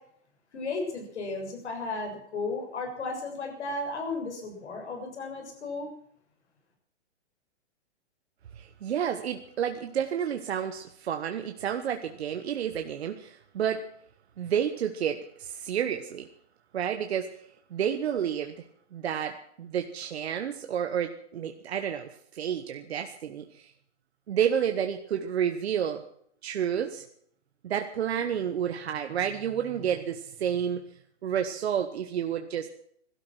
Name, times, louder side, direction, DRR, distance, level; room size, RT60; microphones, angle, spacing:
voice 1, 0.5-5.9, left 3 dB, 70° left, 3 dB, 6.9 m, -34 dB
voice 2, 8.5-13.8 14.4-16.3 16.7-18.6 18.9-23.7 24.3-26.0 26.4-27.0 27.6-30.8 31.2-32.7, right 8 dB, 60° right, 6 dB, 1.4 m, -30 dB
17.0 x 13.0 x 6.1 m, 0.66 s
hypercardioid pair, 155°, 35 cm